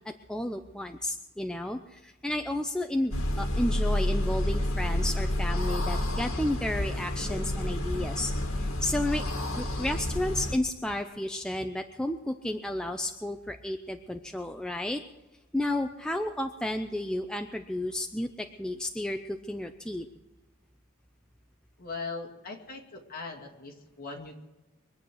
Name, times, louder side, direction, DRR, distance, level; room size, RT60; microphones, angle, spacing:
voice 1, 0.3-9.2 9.6-15.0 15.5-20.1, left 1 dB, 5° left, 5 dB, 0.5 m, -32 dB
sound 1, 3.1-10.6, left 1 dB, 75° left, 1.9 m, -29 dB
voice 2, 21.8-24.5, left 4 dB, 40° left, 0 dB, 2.5 m, -40 dB
23.5 x 8.5 x 6.3 m, 1.1 s
head